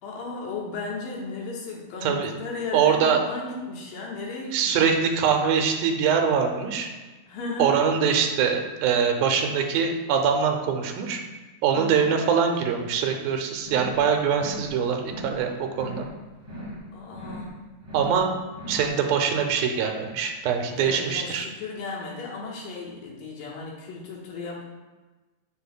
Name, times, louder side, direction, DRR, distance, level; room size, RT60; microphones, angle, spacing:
voice 1, 0.0-4.9 7.3-7.8 11.7-12.2 16.9-17.6 20.8-24.6, left 3 dB, 75° left, -4 dB, 2.8 m, -35 dB
voice 2, 2.7-3.2 4.5-6.9 7.6-11.2 11.6-16.0 17.9-18.3 18.7-21.5, right 6 dB, 85° right, 4 dB, 2.5 m, -23 dB
sound 1, 13.6-14.0 14.3-14.7 15.0-15.4 15.7-16.1 16.4-16.8 17.1-17.5 17.8-18.2 18.5-18.9, equal, 60° right, 0.3 m, -38 dB
7.5 x 7.0 x 2.2 m, 1.2 s
omnidirectional pair, 4.1 m